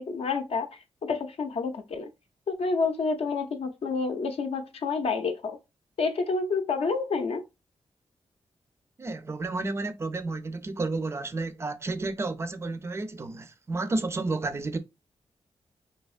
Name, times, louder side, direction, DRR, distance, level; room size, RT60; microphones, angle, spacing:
voice 1, 0.0-2.1 2.5-5.6 6.0-7.4, left 4 dB, 65° left, 0.6 m, -29 dB
voice 2, 9.0-14.8, right 3 dB, 25° right, 0.4 m, -31 dB
3.4 x 2.8 x 2.3 m
wide cardioid pair, 155°, 11 cm